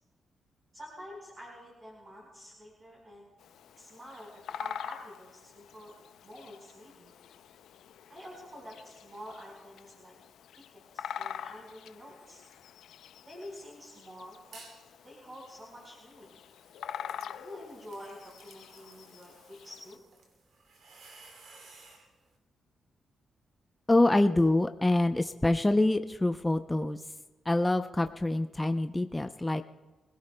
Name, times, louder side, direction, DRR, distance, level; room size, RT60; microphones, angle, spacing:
voice 1, 0.7-3.3 3.8-5.9 6.2-7.1 8.1-10.2 10.7-12.4 13.2-14.6 15.0-16.3 17.3-20.0, equal, 30° right, -4 dB, 4.7 m, -48 dB
Bird vocalization bird call bird song, 3.4-20.0, left 9 dB, 90° left, 0.4 m, -45 dB
sound 1, 14.4-14.9 15.3-22.1, right 3 dB, 80° right, 2.7 m, -56 dB
voice 2, 23.9-27.0 27.5-29.6, left 2 dB, 15° left, 7 dB, 0.6 m, -26 dB
27.0 x 17.0 x 2.2 m, 1.2 s
cardioid pair, 75°, 0 cm